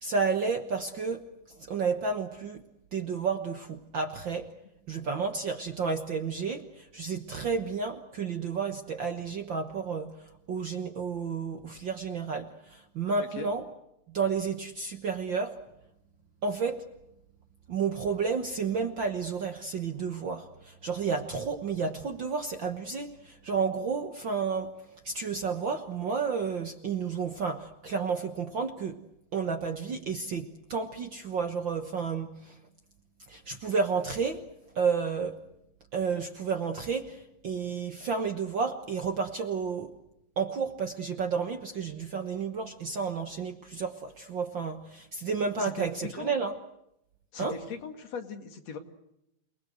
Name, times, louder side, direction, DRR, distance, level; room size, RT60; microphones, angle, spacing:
voice 1, 0.0-1.2 1.6-2.6 2.9-4.5 4.9-10.1 10.5-13.6 14.1-15.6 16.4-16.8 17.7-24.7 25.0-29.0 29.3-32.5 33.3-34.4 34.7-35.4 35.9-39.9 40.4-46.5 47.4-47.6, right 5 dB, 65° right, 7 dB, 1.1 m, -31 dB
voice 2, 45.6-46.3 47.3-48.8, left 5 dB, 50° left, 6 dB, 3.1 m, -39 dB
29.0 x 20.0 x 8.0 m, 0.83 s
omnidirectional pair, 4.0 m